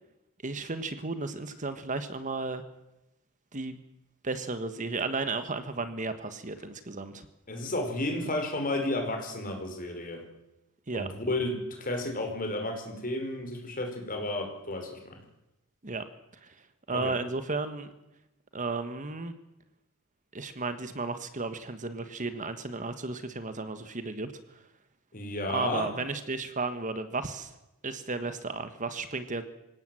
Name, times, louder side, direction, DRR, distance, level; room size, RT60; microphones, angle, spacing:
voice 1, 0.4-2.6 3.5-3.8 4.2-7.3 10.9-11.1 15.8-16.0 16.4-16.5 16.9-17.9 18.5-19.3 20.3-24.3 25.5-27.5 27.8-29.4, right 3 dB, 35° right, 10 dB, 1.4 m, -34 dB
voice 2, 7.5-10.2 10.9-15.2 16.9-17.1 25.1-25.9, left 1 dB, 40° left, 3 dB, 5.0 m, -32 dB
26.0 x 17.0 x 7.8 m, 0.94 s
head